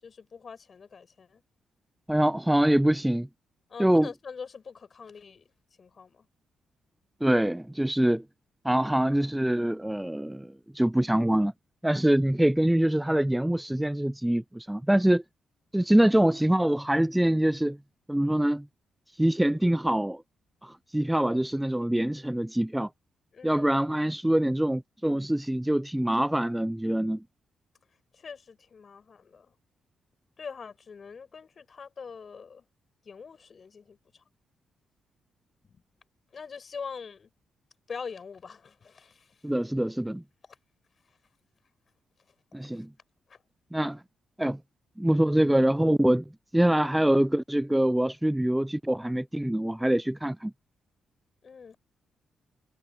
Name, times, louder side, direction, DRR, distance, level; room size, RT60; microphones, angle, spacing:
voice 1, 0.0-1.4 3.7-5.5 5.8-6.3 23.3-23.8 28.1-29.5 30.4-32.6 33.0-34.2 35.6-35.8 36.3-37.3 37.9-39.4 40.4-40.6 42.6-42.8 43.3-43.4 51.4-51.8, left 5 dB, 50° left, 5.4 m, -43 dB
voice 2, 2.1-3.3 3.8-4.1 7.2-8.2 8.6-11.5 11.8-15.2 15.7-17.8 18.1-18.7 19.2-20.2 20.6-22.9 23.4-27.2 39.4-40.2 42.5-42.9 43.7-44.0 44.4-44.6 45.0-46.2 46.5-50.5, right 1 dB, 5° right, 0.3 m, -24 dB
cardioid pair, 70°, 0 cm